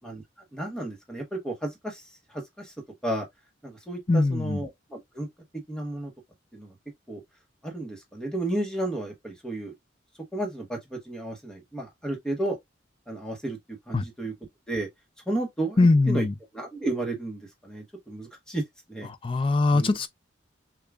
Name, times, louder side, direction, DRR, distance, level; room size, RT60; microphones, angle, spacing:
voice 1, 0.5-2.0 2.3-2.7 3.0-3.3 3.6-5.3 5.7-6.1 6.5-6.7 7.1-7.2 7.6-9.7 10.3-12.6 13.1-13.6 13.9-14.3 14.7-14.9 15.3-15.8 16.1-16.2 16.5-18.6 18.9-19.1 19.7-19.9, right 1 dB, 5° left, 1.0 m, -32 dB
voice 2, 4.1-4.6 13.9-14.0 15.8-16.3 19.2-20.1, left 3 dB, 25° left, 0.4 m, -21 dB
6.5 x 2.3 x 2.4 m
head